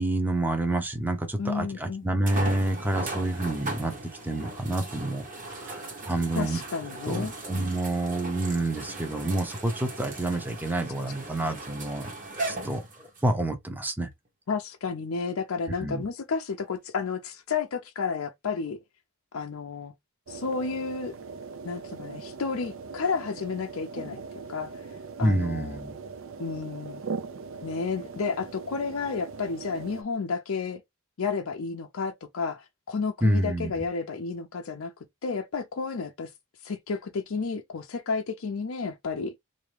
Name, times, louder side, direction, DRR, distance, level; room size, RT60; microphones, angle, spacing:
voice 1, 0.0-3.9 4.2-5.3 5.6-5.8 6.1-6.6 7.1-12.1 12.5-14.1 15.8-16.0 25.2-25.9 33.2-33.7, right 1 dB, 10° right, 0.6 m, -28 dB
sound 1, 1.2-1.3 2.3-13.3 14.0-14.1 17.6-17.7, right 2 dB, 40° right, 1.0 m, -38 dB
voice 2, 1.4-2.0 6.4-7.3 14.5-18.8 19.3-19.9 20.3-21.2 21.6-24.2 24.5-24.9 25.2-25.8 26.4-27.0 27.6-30.8 31.2-34.9 35.2-36.3 36.6-39.3, left 5 dB, 75° left, 0.5 m, -31 dB
sound 2, 20.3-30.0, right 4 dB, 65° right, 0.5 m, -40 dB
3.4 x 2.6 x 3.2 m
head